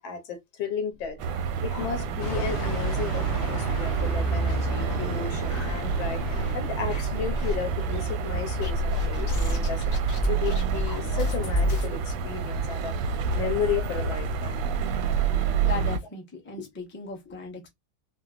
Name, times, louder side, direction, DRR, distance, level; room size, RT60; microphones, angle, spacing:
voice 1, 0.0-9.8 10.3-14.7, left 6 dB, 90° left, 1.5 m, -34 dB
sound 1, 1.0-2.6 2.9-3.0 3.4-3.5 4.1-5.0 5.5-6.5 6.9-7.6 8.6-11.9, equal, 50° left, 1.2 m, -30 dB
sound 2, 1.2-16.0, right 6 dB, 85° right, 1.4 m, -29 dB
sound 3, 2.2-8.8, right 2 dB, 75° left, 1.8 m, -32 dB
voice 2, 15.3-17.7, left 4 dB, 15° left, 0.3 m, -38 dB
3.8 x 2.0 x 2.3 m
omnidirectional pair, 2.1 m